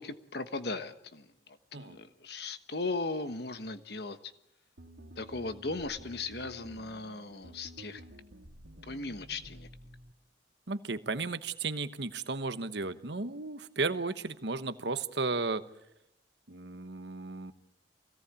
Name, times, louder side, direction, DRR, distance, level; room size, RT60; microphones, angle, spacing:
voice 1, 0.0-4.2 5.2-8.0 8.9-9.7, left 3 dB, 60° left, 10 dB, 1.3 m, -37 dB
sound 1, 4.8-10.1, equal, 85° right, 2.7 m, -51 dB
voice 2, 10.7-15.6 16.5-17.5, right 3 dB, 65° right, 11 dB, 1.1 m, -34 dB
24.5 x 17.5 x 8.4 m, 0.84 s
head